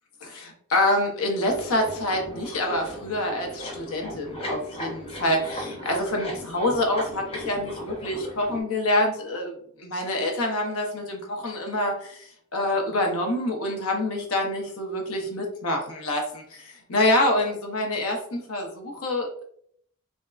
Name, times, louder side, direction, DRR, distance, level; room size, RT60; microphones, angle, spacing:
voice 1, 0.2-19.4, left 1 dB, 65° left, 2 dB, 0.7 m, -26 dB
sound 1, 1.4-8.6, equal, 25° left, 0.7 m, -37 dB
3.4 x 2.1 x 2.3 m, 0.65 s
head